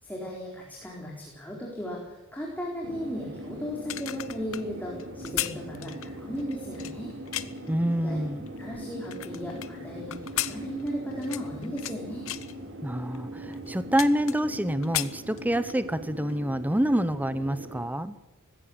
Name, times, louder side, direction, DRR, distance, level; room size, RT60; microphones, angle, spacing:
voice 1, 0.0-7.1 8.0-8.2 8.6-12.3, equal, 10° left, -2 dB, 4.2 m, -36 dB
sound 1, 2.8-17.9, equal, 60° right, 3.6 m, -40 dB
sound 2, 3.7-7.7 8.3-9.7 10.1-12.0 12.3-12.5 13.1-13.2 13.5-14.6 14.8-15.8 16.2-16.4, left 13 dB, 70° left, 1.0 m, -35 dB
voice 2, 7.7-8.5 12.8-18.2, equal, 10° right, 13 dB, 0.7 m, -27 dB
19.0 x 16.0 x 8.8 m, 1.0 s
head